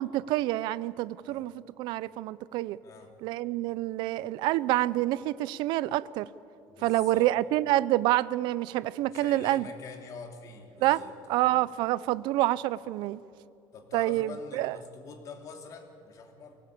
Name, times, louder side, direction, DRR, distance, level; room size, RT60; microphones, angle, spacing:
voice 1, 0.0-2.8 3.2-6.3 6.8-9.7 10.8-11.0 11.3-13.2 13.9-14.8, right 16 dB, 65° right, 19 dB, 0.5 m, -27 dB
voice 2, 6.7-7.3 9.0-11.5 13.7-16.6, left 4 dB, 40° left, 4 dB, 2.8 m, -46 dB
23.5 x 17.0 x 8.5 m, 2.7 s
cardioid pair, 155°, 8 cm